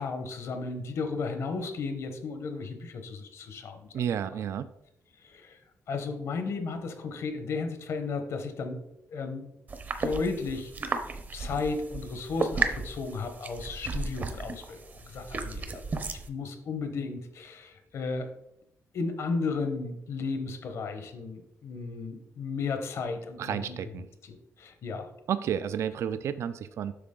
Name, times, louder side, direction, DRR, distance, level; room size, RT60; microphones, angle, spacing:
voice 1, 0.0-4.0 5.2-5.6 5.9-8.8 9.1-9.5 10.0-10.9 11.3-18.3 18.9-23.9 24.2-25.1, left 4 dB, 65° left, 7 dB, 1.1 m, -34 dB
voice 2, 3.9-4.7 23.4-24.1 25.3-26.9, right 9 dB, 60° right, 13 dB, 0.4 m, -31 dB
sound 1, 9.7-16.3, right 4 dB, 35° right, 0.7 m, -34 dB
8.3 x 6.0 x 3.8 m, 0.81 s
wide cardioid pair, 170°, 5 cm